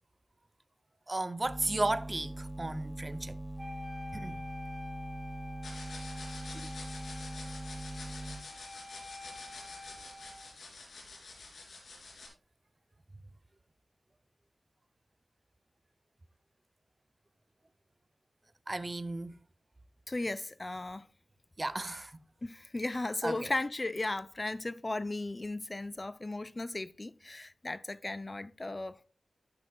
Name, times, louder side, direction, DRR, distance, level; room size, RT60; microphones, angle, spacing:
voice 1, 1.1-3.4 4.1-4.4 18.7-19.3 21.6-22.1 23.2-23.5, right 2 dB, 35° right, 0.6 m, -34 dB
sound 1, 1.4-8.5, right 1 dB, 15° left, 2.6 m, -42 dB
Wind instrument woodwind instrument, 3.6-10.5, left 2 dB, 15° right, 2.5 m, -48 dB
sound 2, 5.6-12.3, left 3 dB, 85° left, 3.1 m, -48 dB
voice 2, 20.1-21.1 22.4-29.0, left 2 dB, 35° left, 0.4 m, -36 dB
11.5 x 8.7 x 2.3 m
cardioid pair, 50°, 0 cm